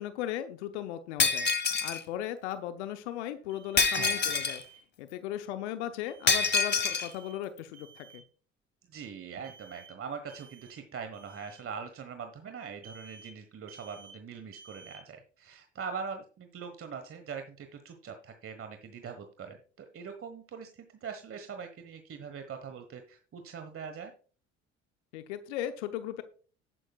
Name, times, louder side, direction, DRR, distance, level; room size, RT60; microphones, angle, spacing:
voice 1, 0.0-4.6 5.0-8.2 25.1-26.2, left 12 dB, 75° left, 10 dB, 0.8 m, -37 dB
Shatter, 1.2-2.0 3.8-4.6 6.3-7.1, left 5 dB, 30° left, 1.5 m, -26 dB
Alarm, 3.5-3.9 4.3-4.8 6.0-6.5 6.9-7.4 7.7-8.2 9.4-9.9 10.3-10.8 11.1-11.6 12.8-13.3 13.7-14.2 14.5-15.0, right 5 dB, 75° right, 4.6 m, -54 dB
voice 2, 3.9-4.4 8.9-24.1, right 6 dB, 40° right, 6 dB, 1.4 m, -42 dB
11.5 x 10.0 x 2.4 m, 0.40 s
hypercardioid pair, 60°, 35 cm